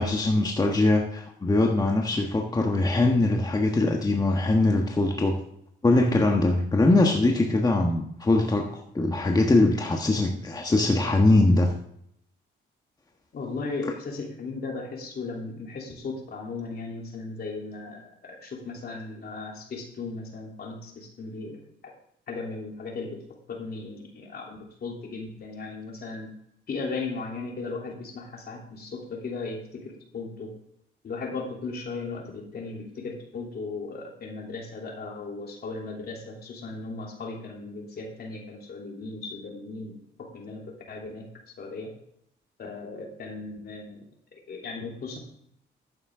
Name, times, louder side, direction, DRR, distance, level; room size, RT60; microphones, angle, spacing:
voice 1, 0.0-5.4 5.8-8.7 8.9-11.7, left 2 dB, 20° left, 1 dB, 1.3 m, -22 dB
voice 2, 13.3-21.9 22.3-23.2 23.5-26.3 26.7-30.5 31.0-41.3 41.6-41.9 42.6-44.0 44.3-45.2, left 3 dB, 50° left, 0 dB, 3.2 m, -36 dB
11.5 x 8.7 x 3.7 m, 0.71 s
cardioid pair, 90°, 20 cm